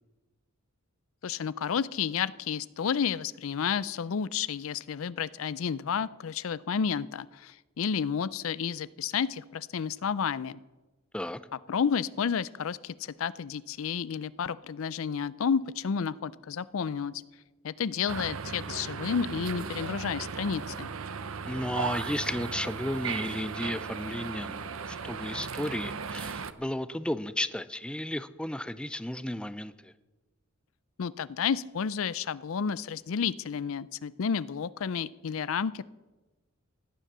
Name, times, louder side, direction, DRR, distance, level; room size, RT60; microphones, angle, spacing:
voice 1, 1.2-10.6 11.7-17.2 17.6-20.9 31.0-35.8, left 6 dB, 70° left, 19 dB, 0.5 m, -31 dB
sound 1, 18.1-26.5, right 5 dB, 70° right, 0.7 m, -36 dB
voice 2, 21.5-29.9, left 1 dB, 5° left, 14 dB, 0.4 m, -34 dB
16.0 x 10.0 x 6.7 m, 1.2 s
head